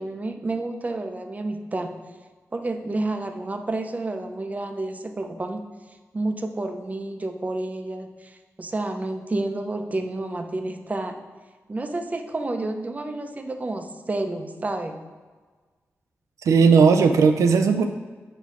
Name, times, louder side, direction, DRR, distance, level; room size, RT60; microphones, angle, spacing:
voice 1, 0.0-1.9 2.5-5.6 6.1-11.2 11.7-15.0, right 2 dB, 30° right, 6 dB, 0.6 m, -30 dB
voice 2, 16.4-17.9, right 5 dB, 85° right, 6 dB, 0.3 m, -16 dB
5.4 x 4.1 x 4.7 m, 1.4 s
cardioid pair, 65°, 5 cm